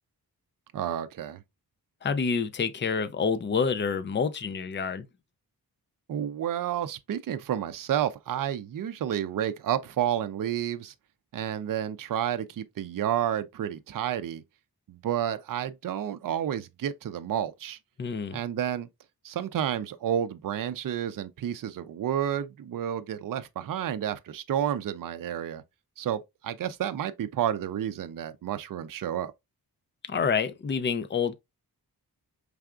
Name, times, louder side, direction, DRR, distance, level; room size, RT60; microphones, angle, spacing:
voice 1, 0.7-1.4 6.1-10.9 11.3-14.4 14.9-17.8 18.3-18.9 19.2-25.6 26.0-29.3, right 10 dB, 55° right, 0.5 m, -30 dB
voice 2, 2.0-5.1 18.0-18.4 30.1-31.3, left 5 dB, 30° left, 0.4 m, -28 dB
4.7 x 3.4 x 2.3 m
wide cardioid pair, 150°, 39 cm